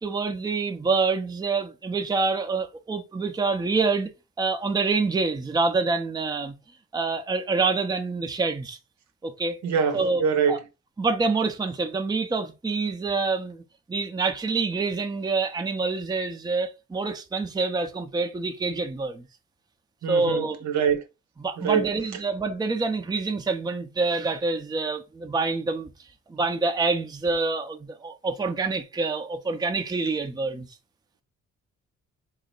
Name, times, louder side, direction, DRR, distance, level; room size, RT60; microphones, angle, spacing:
voice 1, 0.0-4.1 4.4-6.6 6.9-8.8 9.2-9.6 9.9-10.2 10.5-10.6 11.0-13.6 13.9-19.3 20.1-20.6 21.4-25.9 26.3-30.7, right 4 dB, 15° right, 0.6 m, -26 dB
voice 2, 9.6-10.6 20.0-21.0 21.6-21.9, right 7 dB, 65° right, 0.8 m, -24 dB
4.0 x 2.1 x 3.8 m
cardioid pair, 90°, 30 cm